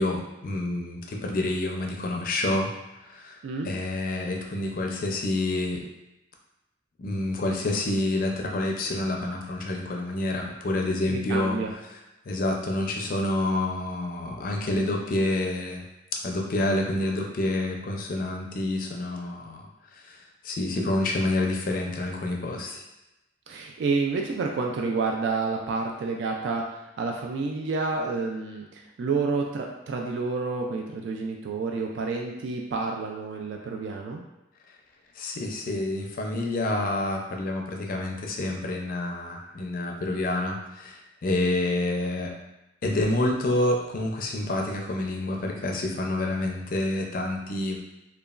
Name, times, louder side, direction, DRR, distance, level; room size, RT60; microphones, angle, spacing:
voice 1, 0.0-2.7 3.0-3.4 3.6-5.9 7.0-11.6 12.3-15.8 16.2-19.6 19.9-20.2 20.4-22.8 35.2-42.4 42.8-47.8, left 2 dB, 50° left, 1 dB, 0.4 m, -28 dB
voice 2, 11.1-11.7 23.5-26.6 27.0-34.2, right 4 dB, 70° right, 1 dB, 0.3 m, -29 dB
2.9 x 2.2 x 2.4 m, 0.95 s
head